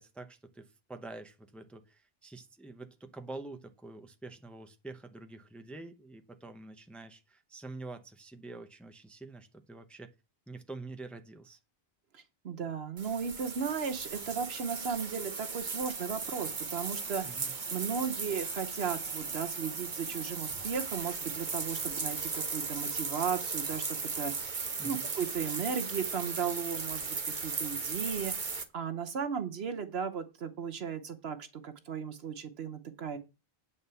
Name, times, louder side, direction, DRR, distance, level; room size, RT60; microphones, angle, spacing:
voice 1, 0.0-10.1 10.5-11.6 17.2-17.5 24.8-25.1, right 3 dB, ahead, 6 dB, 0.7 m, -46 dB
voice 2, 12.1-33.2, right 6 dB, 75° right, 8 dB, 1.2 m, -36 dB
sound 1, 13.0-28.6, right 4 dB, 50° right, 1.2 m, -37 dB
8.8 x 4.2 x 6.8 m, 0.29 s
omnidirectional pair, 1.1 m